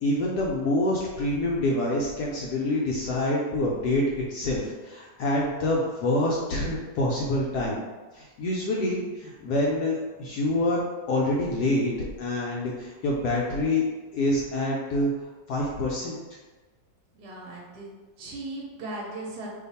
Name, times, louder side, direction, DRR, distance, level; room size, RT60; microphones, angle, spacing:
voice 1, 0.0-7.8 8.1-11.9 12.2-13.9 14.1-15.1 15.5-16.2, left 1 dB, 70° left, -3 dB, 1.0 m, -26 dB
voice 2, 17.1-17.9 18.2-19.5, right 2 dB, 65° right, -3 dB, 1.1 m, -37 dB
2.8 x 2.4 x 4.0 m, 1.3 s
omnidirectional pair, 2.0 m